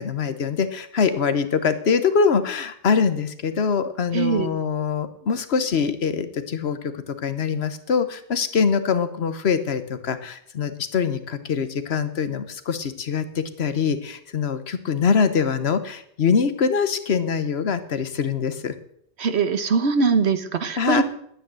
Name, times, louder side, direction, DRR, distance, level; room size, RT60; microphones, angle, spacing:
voice 1, 0.0-18.7 20.8-21.0, left 6 dB, 75° left, 12 dB, 1.3 m, -23 dB
voice 2, 4.1-4.5 19.2-21.0, right 5 dB, 80° right, 10 dB, 1.4 m, -21 dB
10.5 x 9.7 x 7.5 m, 0.69 s
omnidirectional pair, 1.1 m